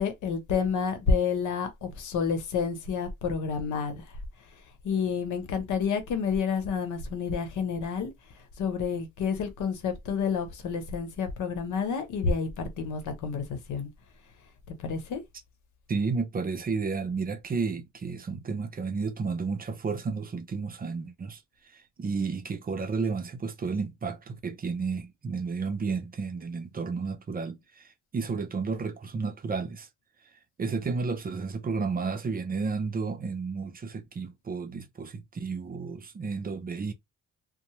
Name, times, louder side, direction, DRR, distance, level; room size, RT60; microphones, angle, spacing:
voice 1, 0.0-4.1 4.8-8.1 8.6-13.9 14.7-15.2, left 5 dB, 80° left, 0.9 m, -29 dB
voice 2, 15.9-21.4 21.7-27.8 28.1-29.9 30.6-36.9, right 4 dB, 30° right, 0.5 m, -32 dB
2.7 x 2.1 x 3.0 m
cardioid pair, 90°, 30 cm